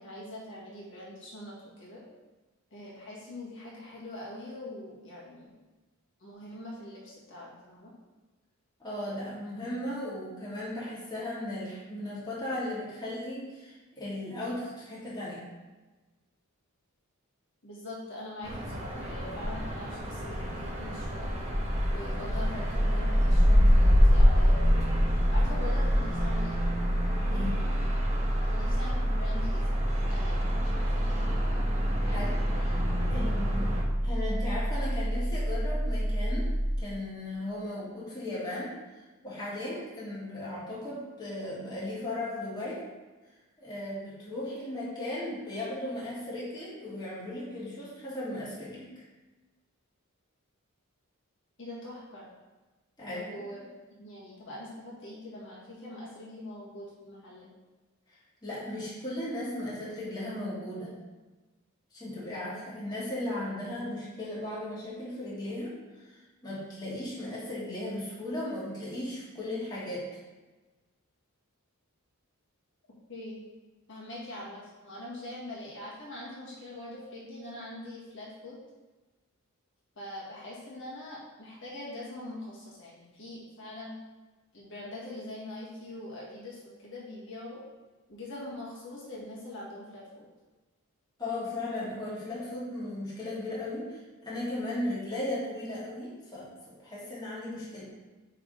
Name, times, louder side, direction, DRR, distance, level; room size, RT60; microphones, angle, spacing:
voice 1, 0.0-2.0 2.7-5.5 6.2-7.9 17.6-21.3 21.9-24.9 25.3-26.7 28.5-29.8 30.1-30.4 30.7-31.2 51.6-52.3 53.1-53.6 54.0-57.5 63.2-63.4 73.1-73.4 73.9-78.6 80.0-84.0 84.5-87.6 88.1-90.3, left 1 dB, 60° left, -6 dB, 1.8 m, -43 dB
voice 2, 8.8-15.4 27.3-27.6 32.0-32.8 33.1-33.7 34.0-36.5 36.8-38.7 39.2-42.8 43.6-49.0 53.0-53.3 58.4-60.9 61.9-65.7 66.0-70.1 91.2-96.5 96.8-97.9, left 1 dB, 20° left, -8 dB, 1.9 m, -36 dB
sound 1, 18.4-33.8, equal, 30° right, 1.1 m, -27 dB
sound 2, 22.7-36.8, equal, 45° right, 0.8 m, -28 dB
8.4 x 3.5 x 3.9 m, 1.2 s
head